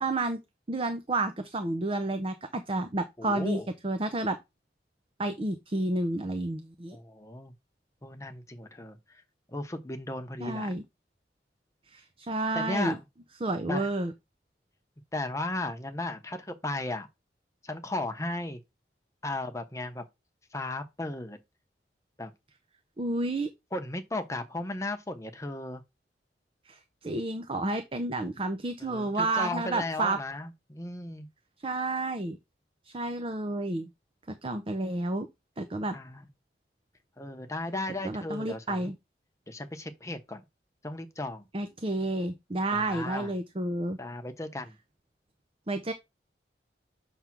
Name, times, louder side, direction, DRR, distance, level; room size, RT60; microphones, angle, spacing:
voice 1, 0.0-0.4 0.7-4.4 5.2-7.0 10.4-10.8 11.9-13.0 13.4-14.1 23.0-23.5 26.7-30.2 31.6-32.4 32.9-33.9 34.4-35.3 35.6-36.0 38.0-38.9 41.5-44.0 45.7-45.9, right 2 dB, 30° right, 0.6 m, -30 dB
voice 2, 3.2-3.7 6.9-7.5 8.0-9.2 9.5-10.7 12.5-13.0 13.7-13.9 15.1-17.1 17.6-18.6 19.2-20.0 20.5-21.4 22.2-22.3 23.7-25.8 28.8-31.3 35.9-36.3 37.2-38.9 39.5-40.4 40.8-41.5 42.7-43.3 44.0-44.8, left 2 dB, 15° left, 0.9 m, -35 dB
7.3 x 3.4 x 5.9 m
head